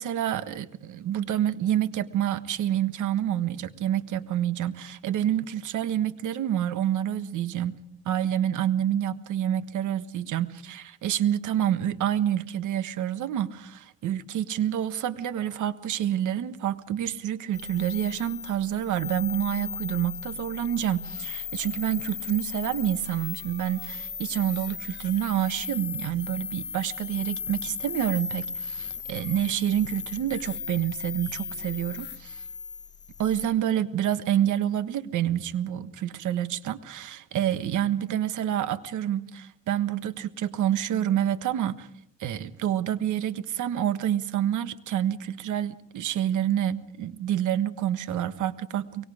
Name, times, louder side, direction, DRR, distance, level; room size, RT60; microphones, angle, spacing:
voice 1, 0.0-7.8 8.0-32.4 33.2-41.9 42.2-49.0, right 11 dB, 75° right, 1.4 m, -28 dB
sound 1, 17.5-33.5, left 7 dB, 35° left, 1.3 m, -37 dB
24.0 x 23.5 x 5.0 m
cardioid pair, 90°, 30 cm